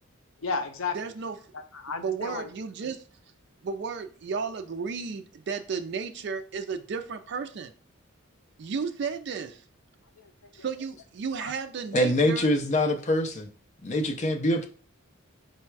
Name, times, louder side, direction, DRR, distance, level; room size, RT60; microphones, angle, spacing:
voice 1, 0.4-1.1 1.5-2.5 2.8-2.9 10.2-10.3 11.4-11.5, left 4 dB, 75° left, 6 dB, 0.6 m, -33 dB
voice 2, 0.9-1.3 2.0-3.0 3.6-7.7 8.6-9.6 10.5-12.5, right 5 dB, 55° right, 6 dB, 0.4 m, -33 dB
voice 3, 11.9-13.5 13.8-14.7, left 1 dB, 35° left, 5 dB, 0.5 m, -24 dB
4.0 x 2.2 x 4.5 m, 0.41 s
head